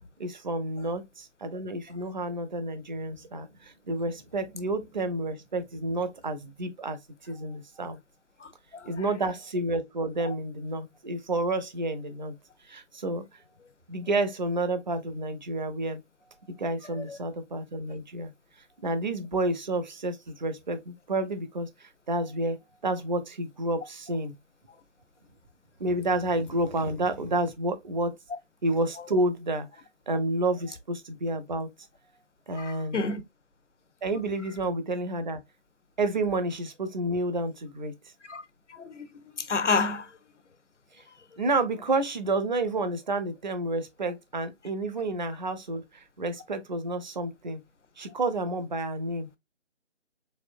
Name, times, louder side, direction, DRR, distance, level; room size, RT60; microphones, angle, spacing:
voice 1, 0.0-7.0 7.3-8.0 8.9-12.4 12.7-13.2 13.9-16.0 16.6-18.3 18.8-22.6 22.8-24.3 25.8-28.2 28.6-29.7 30.1-31.7 32.5-33.0 34.0-35.4 36.0-37.9 41.4-47.6 48.0-49.4, right 2 dB, 40° right, 0.6 m, -30 dB
voice 2, 8.4-9.0 10.2-10.3 16.9-17.2 29.0-29.1 32.5-33.2 38.3-38.4 38.7-39.1 39.3-40.1, left 4 dB, 75° left, 0.8 m, -30 dB
4.3 x 2.9 x 2.4 m
figure-of-eight pair, 150°, 36 cm